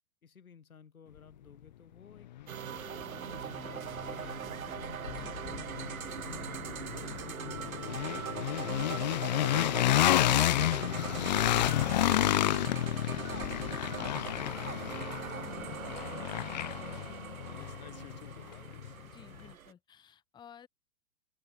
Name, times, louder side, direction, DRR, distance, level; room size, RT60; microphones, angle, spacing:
voice 1, 0.2-2.3 2.8-4.4 4.8-6.5 7.0-7.5 11.6-16.0 16.5-18.0, left 6 dB, 70° left, 7.2 m, -57 dB
sound 1, 2.4-2.5 3.0-18.9, left 13 dB, 30° left, 0.5 m, -31 dB
sound 2, 2.5-19.7, right 9 dB, 65° right, 1.2 m, -41 dB
voice 2, 5.1-5.4 7.0-7.3 19.0-20.7, left 8 dB, 10° left, 1.1 m, -55 dB
open air
figure-of-eight pair, 115°, 44 cm